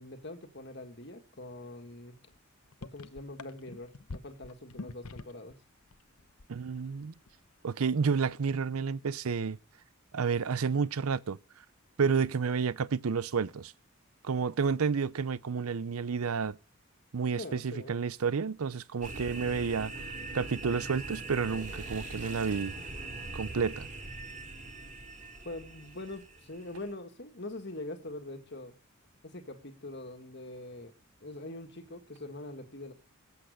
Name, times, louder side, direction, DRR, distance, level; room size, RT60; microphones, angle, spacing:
voice 1, 0.0-2.2 2.8-5.6 17.4-17.9 25.4-28.7 29.2-30.9 31.2-32.9, left 2 dB, 50° left, 1.8 m, -43 dB
sound 1, 2.3-2.4 2.7-5.5 5.8-6.9 7.2-7.5, left 3 dB, 85° left, 0.9 m, -45 dB
voice 2, 6.5-7.1 7.6-9.6 10.1-11.4 12.0-13.7 14.2-16.6 17.1-19.9 20.3-22.7 23.3-23.9, right 5 dB, 80° right, 0.6 m, -30 dB
sound 2, 19.0-26.9, right 2 dB, 35° right, 2.6 m, -42 dB
19.0 x 8.1 x 6.4 m
head